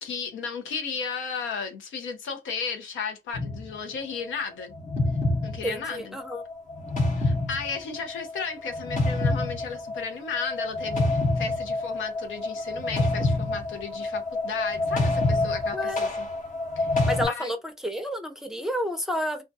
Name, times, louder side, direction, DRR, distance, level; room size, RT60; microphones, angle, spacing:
voice 1, 0.0-4.7 5.4-6.2 7.2-16.3 16.8-17.5, left 5 dB, 75° left, 0.8 m, -34 dB
sound 1, 3.3-3.7 4.7-17.3, left 2 dB, 40° left, 0.9 m, -27 dB
voice 2, 5.6-6.4 15.7-16.0 17.1-17.6 17.8-19.4, equal, ahead, 0.6 m, -30 dB
2.4 x 2.1 x 2.6 m
cardioid pair, 90°, 20 cm